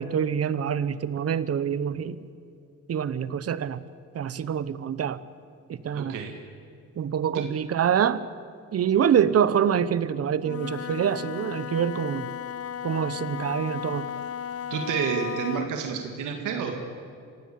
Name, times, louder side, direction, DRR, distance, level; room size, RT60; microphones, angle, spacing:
voice 1, 0.0-2.2 2.9-3.8 4.1-5.2 5.7-6.2 7.0-8.2 8.7-12.3 12.8-14.1, right 8 dB, 55° right, 16 dB, 1.0 m, -25 dB
voice 2, 5.9-6.3 7.3-7.4 14.7-16.8, right 6 dB, 85° right, 4 dB, 2.0 m, -29 dB
Wind instrument woodwind instrument, 10.4-15.8, left 8 dB, 50° left, 0.8 m, -35 dB
24.5 x 16.5 x 8.6 m, 2.4 s
cardioid pair, 90°, 30 cm